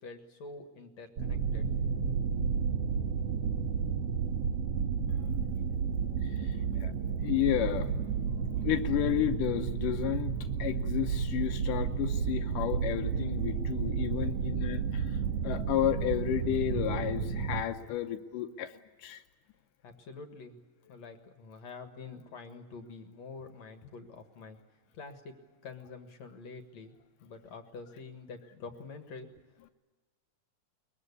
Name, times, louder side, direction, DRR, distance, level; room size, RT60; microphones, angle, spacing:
voice 1, 0.0-1.7 19.8-20.6 20.9-24.6 25.0-25.3 25.6-29.3, left 4 dB, 60° left, 7 dB, 2.7 m, -47 dB
sound 1, 1.2-17.6, right 6 dB, 60° right, 2.2 m, -32 dB
voice 2, 7.2-7.9 8.6-10.3 10.6-15.2 15.4-18.7 19.0-19.2, left 12 dB, 85° left, 5 dB, 2.5 m, -32 dB
22.5 x 22.0 x 8.4 m, 1.3 s
omnidirectional pair, 3.6 m